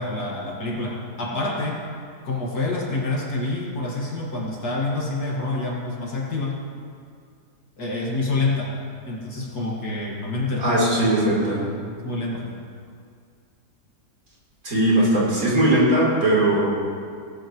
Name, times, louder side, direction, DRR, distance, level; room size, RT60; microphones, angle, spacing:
voice 1, 0.0-1.8 2.2-6.6 7.8-8.7 9.0-10.8 12.0-12.5, left 2 dB, 65° left, -3 dB, 2.5 m, -27 dB
voice 2, 10.6-11.7 14.6-16.7, right 1 dB, 55° right, -5 dB, 4.1 m, -19 dB
18.0 x 12.5 x 3.1 m, 2.2 s
omnidirectional pair, 1.8 m